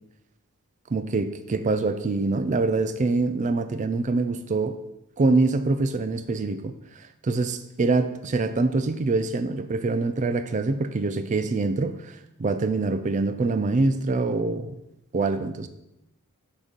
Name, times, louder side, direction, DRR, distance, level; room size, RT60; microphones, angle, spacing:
voice 1, 0.9-4.8 5.2-6.7 7.2-11.9 12.4-14.8 15.1-15.7, right 3 dB, 35° right, 10 dB, 0.4 m, -24 dB
6.1 x 4.0 x 5.2 m, 0.89 s
head